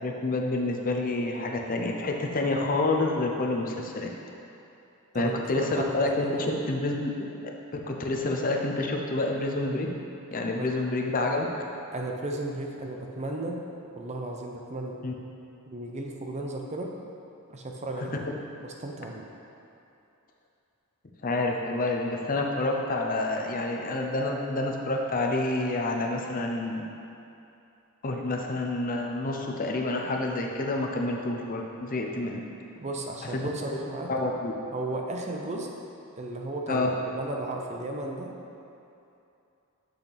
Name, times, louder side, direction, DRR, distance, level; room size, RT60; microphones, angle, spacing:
voice 1, 0.0-4.1 5.1-7.3 7.7-9.9 10.3-11.5 15.0-15.1 21.2-26.8 28.0-32.4 33.3-33.5 34.1-34.5 36.7-36.9, left 2 dB, 40° left, 1 dB, 0.7 m, -28 dB
voice 2, 5.1-6.6 10.6-10.7 11.9-13.7 13.9-15.0 15.7-17.0 17.5-18.3 18.6-19.3 32.8-34.1 34.7-35.7 36.2-36.9 37.1-38.3, right 2 dB, 30° right, 1 dB, 0.6 m, -34 dB
8.5 x 6.4 x 3.4 m, 2.7 s
head